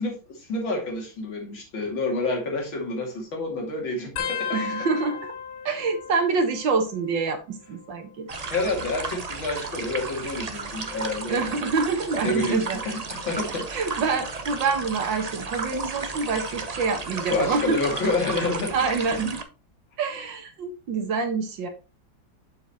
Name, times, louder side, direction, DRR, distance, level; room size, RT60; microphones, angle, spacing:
voice 1, 0.0-4.6 8.5-11.4 12.2-13.7 17.3-18.8, left 2 dB, 80° left, 3.1 m, -28 dB
sound 1, 4.2-7.3 7.6-8.2 9.2-10.7 11.3-11.6 12.9-13.2 14.7-14.8, left 7 dB, 65° left, 1.4 m, -36 dB
voice 2, 4.5-5.3 5.7-8.3 11.3-12.8 13.7-17.8 18.7-19.4 20.0-21.7, right 4 dB, 70° right, 2.1 m, -26 dB
sound 2, 8.3-19.4, right 4 dB, 45° right, 0.5 m, -34 dB
7.3 x 6.9 x 2.9 m
omnidirectional pair, 2.1 m